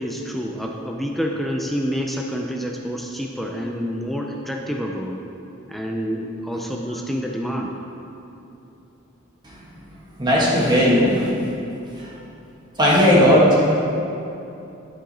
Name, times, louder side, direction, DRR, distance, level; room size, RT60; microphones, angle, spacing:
voice 1, 0.0-5.2 5.7-7.7 13.2-13.4, equal, ahead, 0 dB, 0.5 m, -28 dB
voice 2, 10.2-11.3 12.0-12.1 12.8-13.7, equal, 20° right, -5 dB, 1.6 m, -16 dB
11.5 x 6.3 x 4.2 m, 2.8 s
head